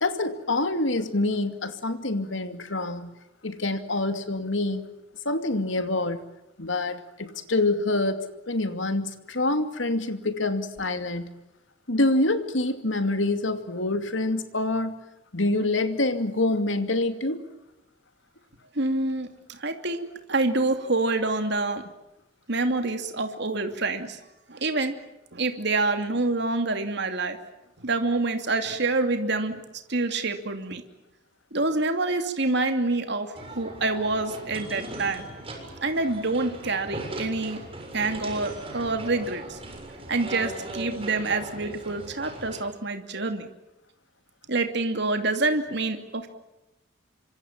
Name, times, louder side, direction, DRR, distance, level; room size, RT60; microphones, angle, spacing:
voice 1, 0.0-3.1 3.4-4.8 5.2-6.2 6.6-11.3 11.9-15.0 15.3-17.4, left 2 dB, 75° left, 9 dB, 2.6 m, -26 dB
voice 2, 18.7-21.8 22.5-24.2 24.5-25.0 25.3-27.4 27.8-29.6 29.9-30.8 31.5-35.3 35.6-37.6 37.9-39.6 40.1-43.5 44.5-46.3, right 3 dB, 60° right, 6 dB, 2.7 m, -27 dB
sound 1, 33.4-42.6, right 1 dB, 30° right, 6.7 m, -39 dB
27.0 x 24.5 x 7.4 m, 0.93 s
head